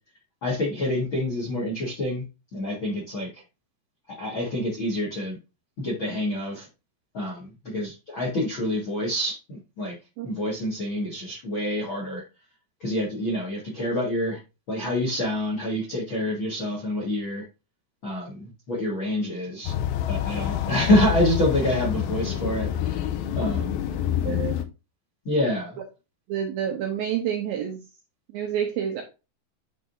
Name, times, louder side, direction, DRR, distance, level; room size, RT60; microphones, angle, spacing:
voice 1, 0.4-2.2 2.5-3.3 4.1-5.4 5.8-6.7 7.1-9.9 10.2-12.2 12.8-14.4 14.7-17.4 18.0-19.7 20.1-23.0 23.3-23.9 25.2-25.7, left 1 dB, 60° left, 1.3 m, -27 dB
sound 1, 19.7-24.6, left 10 dB, 90° left, 2.1 m, -27 dB
voice 2, 24.2-24.6 26.3-27.8 28.3-29.0, right 9 dB, 80° right, 2.2 m, -28 dB
10.5 x 3.7 x 2.6 m
omnidirectional pair, 5.1 m